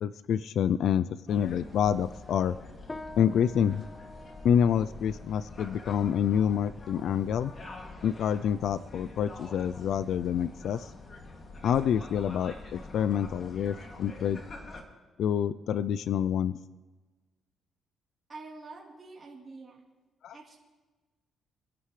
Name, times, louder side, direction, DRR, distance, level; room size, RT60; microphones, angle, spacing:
voice 1, 0.0-2.6 3.2-3.8 4.4-7.5 8.0-10.9 11.6-14.4 15.2-16.6 20.2-20.4, left 8 dB, 70° left, 16 dB, 0.4 m, -27 dB
sound 1, 1.3-14.8, left 2 dB, 40° left, 2.4 m, -46 dB
sound 2, 2.9-12.5, left 2 dB, 15° left, 0.7 m, -51 dB
voice 2, 18.3-19.8 20.3-20.6, right 3 dB, 30° right, -4 dB, 3.5 m, -46 dB
27.0 x 11.0 x 3.3 m, 1.3 s
cardioid pair, 90°, 0 cm